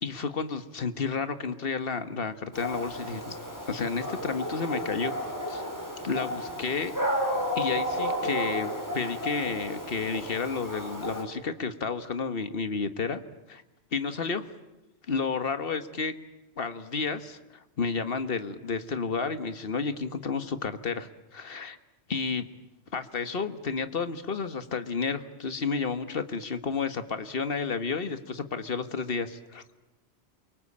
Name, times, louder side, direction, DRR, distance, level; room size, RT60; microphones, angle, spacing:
voice 1, 0.0-3.3 3.7-5.1 5.5-5.6 6.0-6.9 7.6-13.2 13.5-13.6 13.9-14.5 15.1-16.1 16.6-21.8 22.1-22.5 22.9-29.6, left 5 dB, 55° left, 11 dB, 1.6 m, -31 dB
Dog, 2.5-11.2, equal, 15° left, 4.8 m, -32 dB
28.5 x 24.0 x 8.6 m, 1.0 s
omnidirectional pair, 1.2 m